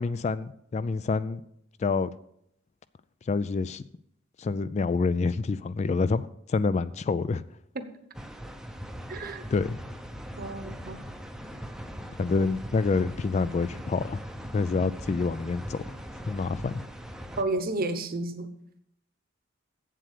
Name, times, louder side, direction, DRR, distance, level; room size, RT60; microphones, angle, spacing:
voice 1, 0.0-1.4 1.8-2.1 3.3-3.8 4.4-7.4 9.5-9.8 12.2-14.2 14.5-15.8 16.3-16.8, left 4 dB, 35° left, 15 dB, 0.3 m, -27 dB
sound 1, 8.1-17.4, equal, 5° right, 0.6 m, -40 dB
voice 2, 9.1-9.4 10.4-11.0 17.4-18.5, right 2 dB, 45° right, 9 dB, 0.9 m, -31 dB
7.9 x 7.5 x 6.7 m, 0.72 s
head